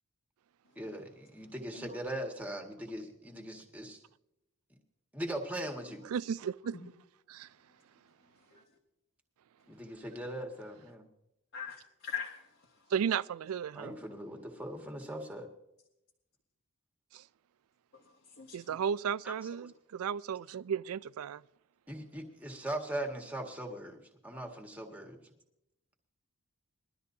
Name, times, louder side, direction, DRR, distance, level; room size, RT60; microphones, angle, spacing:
voice 1, 0.8-4.0 5.1-6.0 9.7-11.0 13.8-15.5 19.2-19.3 19.6-19.7 21.9-24.0 24.2-25.2, right 1 dB, 5° right, 1.7 m, -40 dB
voice 2, 6.1-6.8 7.3-7.5 12.9-13.9 17.1-17.2 18.5-21.4, right 7 dB, 75° right, 0.3 m, -34 dB
voice 3, 8.2-8.6 9.6-10.2 11.5-12.9 17.9-18.8, left 7 dB, 55° left, 1.7 m, -45 dB
21.5 x 12.5 x 2.8 m
head